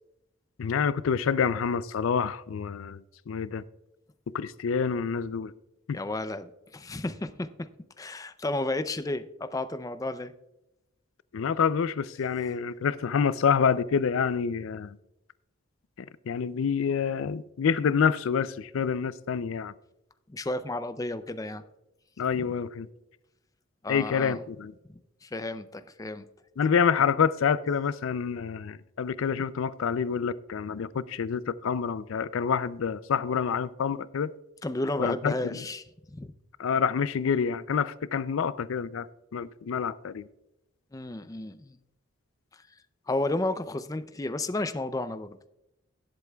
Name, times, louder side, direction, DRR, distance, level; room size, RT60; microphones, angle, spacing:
voice 1, 0.6-3.6 4.3-5.5 5.9-6.0 11.3-15.0 16.0-19.7 22.2-22.9 23.9-24.7 26.6-34.3 35.0-35.6 36.6-39.1 39.3-40.3, left 6 dB, 75° left, 16 dB, 0.4 m, -27 dB
voice 2, 5.9-7.7 8.0-10.3 20.3-21.6 22.3-22.5 23.8-24.4 24.9-26.3 34.6-36.3 40.9-41.8 42.5-42.6 43.1-45.5, left 2 dB, 15° left, 11 dB, 0.4 m, -32 dB
18.0 x 8.1 x 2.3 m, 0.88 s
head